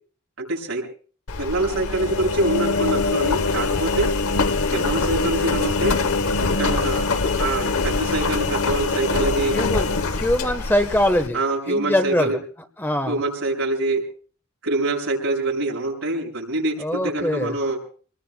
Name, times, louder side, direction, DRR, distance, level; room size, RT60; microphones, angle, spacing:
voice 1, 0.4-0.9 1.4-4.1 4.7-6.0 6.6-7.1 7.4-9.6 11.3-12.4 13.1-14.0 14.6-17.8, right 2 dB, 70° right, 0 dB, 6.1 m, -25 dB
Engine, 1.3-11.3, left 3 dB, 80° left, 0.9 m, -23 dB
voice 2, 9.5-11.4 11.7-12.4 12.8-13.2 16.8-17.6, left 1 dB, 10° left, 8 dB, 1.0 m, -23 dB
27.5 x 20.0 x 2.2 m, 0.42 s
head